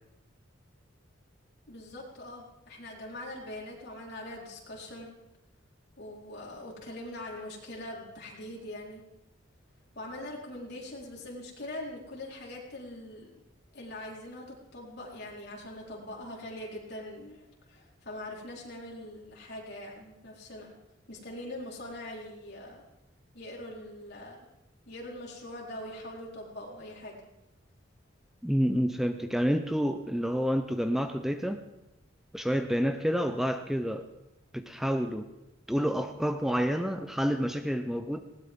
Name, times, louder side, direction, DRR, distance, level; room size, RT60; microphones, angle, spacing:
voice 1, 1.7-5.1 6.0-9.0 9.9-13.3 13.7-20.7 21.1-22.8 23.3-24.5 24.9-27.2, left 1 dB, 55° left, -3 dB, 4.4 m, -42 dB
voice 2, 28.4-31.6 32.3-34.1 34.5-35.3 35.7-38.2, equal, ahead, 7 dB, 0.6 m, -28 dB
20.0 x 17.5 x 3.8 m, 0.93 s
head